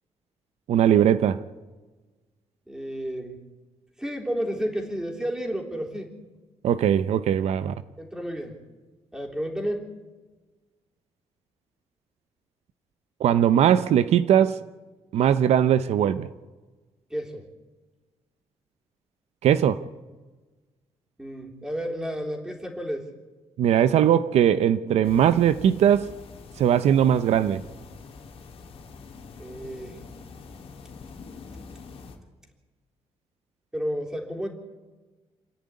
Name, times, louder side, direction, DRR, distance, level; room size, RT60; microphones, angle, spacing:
voice 1, 0.7-1.4 6.6-7.7 13.2-14.6 15.1-16.3 19.4-19.8 23.6-26.1 26.6-27.6, right 9 dB, 75° right, 0.7 m, -20 dB
voice 2, 2.7-3.4 4.0-6.1 8.0-8.6 9.1-9.9 17.1-17.5 21.2-23.1 29.4-30.0 33.7-34.5, equal, 5° right, 3.6 m, -31 dB
sound 1, 25.0-32.2, left 4 dB, 60° left, 2.6 m, -45 dB
29.0 x 10.5 x 9.7 m
cardioid pair, 135°, 11 cm